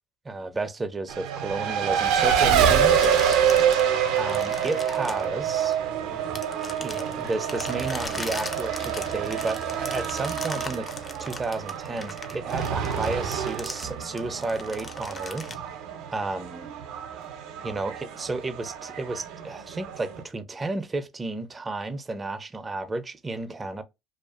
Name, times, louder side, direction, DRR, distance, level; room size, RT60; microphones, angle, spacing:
voice 1, 0.2-3.4 4.1-5.8 6.8-10.9 11.2-15.5 16.1-16.7 17.6-23.8, right 3 dB, 25° right, 0.5 m, -32 dB
Race car auto racing, 1.1-20.2, right 8 dB, 75° right, 0.5 m, -27 dB
sound 1, 2.8-5.9 6.4-15.5, left 3 dB, 25° left, 0.5 m, -39 dB
2.4 x 2.4 x 2.4 m
supercardioid pair, 85°, 0 cm